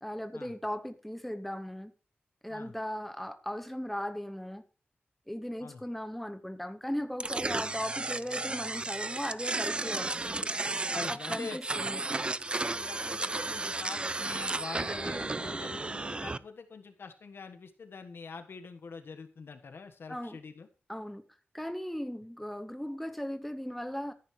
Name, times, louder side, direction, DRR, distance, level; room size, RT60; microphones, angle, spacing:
voice 1, 0.0-1.9 2.4-4.6 5.3-10.5 11.1-12.0 20.1-20.4 20.9-21.2 21.5-24.1, equal, 5° left, 0.8 m, -37 dB
sound 1, 7.2-16.4, right 2 dB, 25° right, 0.4 m, -33 dB
voice 2, 10.9-11.6 12.0-12.1 12.7-20.7, left 4 dB, 75° left, 1.4 m, -44 dB
14.0 x 10.5 x 3.2 m
wide cardioid pair, 110°, 4 cm